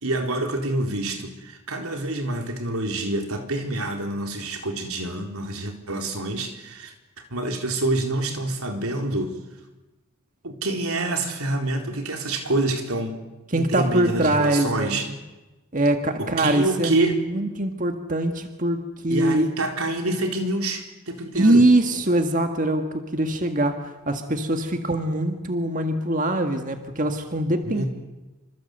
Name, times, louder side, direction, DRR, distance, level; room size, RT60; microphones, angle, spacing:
voice 1, 0.0-6.9 7.3-9.4 10.4-13.2 13.5-15.1 16.2-17.2 19.1-21.6 27.6-27.9, right 2 dB, 85° right, 4 dB, 4.1 m, -27 dB
voice 2, 13.5-15.2 15.7-19.5 21.3-27.8, right 1 dB, 35° right, 6 dB, 1.8 m, -23 dB
27.0 x 26.0 x 8.0 m, 1.1 s
head